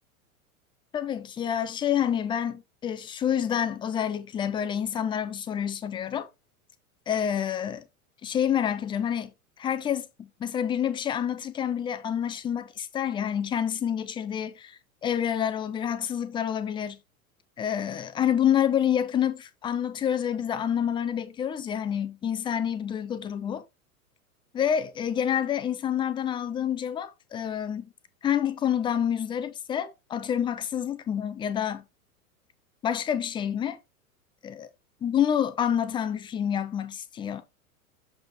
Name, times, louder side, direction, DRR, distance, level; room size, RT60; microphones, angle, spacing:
voice 1, 0.9-6.3 7.1-7.8 8.2-9.3 9.6-17.0 17.6-23.6 24.5-27.9 28.2-31.8 32.8-33.8 34.4-34.7 35.0-37.4, left 9 dB, 10° left, 0.5 m, -28 dB
7.2 x 4.8 x 3.7 m
figure-of-eight pair, 90°, 44 cm